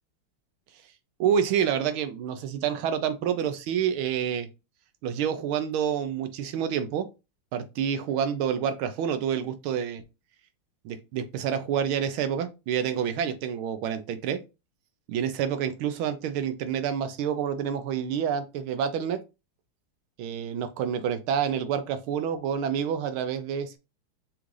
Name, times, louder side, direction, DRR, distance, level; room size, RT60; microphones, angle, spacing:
voice 1, 1.2-4.5 5.0-7.1 7.5-10.0 10.8-14.4 15.1-19.2 20.2-23.8, right 8 dB, 85° right, 1.5 m, -28 dB
6.0 x 2.5 x 3.2 m
omnidirectional pair, 2.3 m